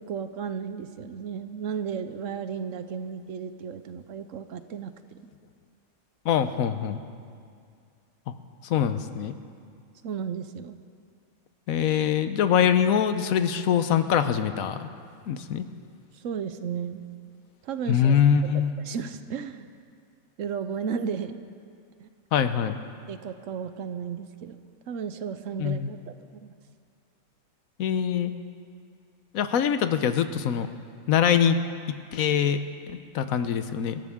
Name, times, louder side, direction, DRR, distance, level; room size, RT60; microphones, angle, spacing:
voice 1, 0.0-4.9 10.0-10.8 16.1-17.0 17.6-18.5 18.8-19.7 20.4-21.4 22.0-22.1 23.1-24.6 24.9-26.1 26.4-26.5, right 7 dB, 70° right, 10 dB, 1.0 m, -34 dB
voice 2, 6.2-7.0 8.6-9.3 11.7-14.9 15.3-15.6 17.9-18.7 22.3-22.8 25.6-25.9 27.8-28.3 29.3-30.7 31.1-31.6 32.1-32.6 32.9-34.0, left 8 dB, 80° left, 10 dB, 1.1 m, -23 dB
24.0 x 13.0 x 3.6 m, 2.3 s
omnidirectional pair, 1.5 m